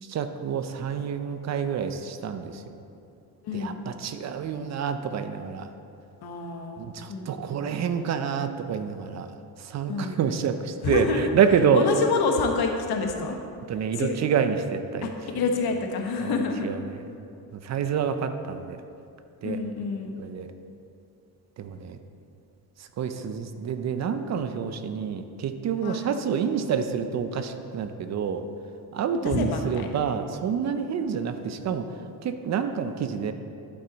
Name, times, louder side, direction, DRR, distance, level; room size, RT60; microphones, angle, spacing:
voice 1, 0.0-2.6 3.5-5.7 6.8-9.3 9.6-11.9 13.7-15.1 16.2-17.1 17.5-18.8 19.4-19.6 20.2-20.5 21.6-22.0 22.8-28.4 28.9-31.8 32.2-33.3, right 7 dB, 45° right, 8 dB, 0.6 m, -28 dB
voice 2, 3.4-3.8 6.2-7.6 9.9-10.2 10.8-11.3 11.7-13.4 14.0-14.1 15.0-15.1 15.3-16.7 19.4-20.2 25.8-26.2 29.2-29.9, left 4 dB, 80° left, 3 dB, 1.1 m, -28 dB
12.0 x 5.6 x 4.0 m, 2.7 s
cardioid pair, 145°, 37 cm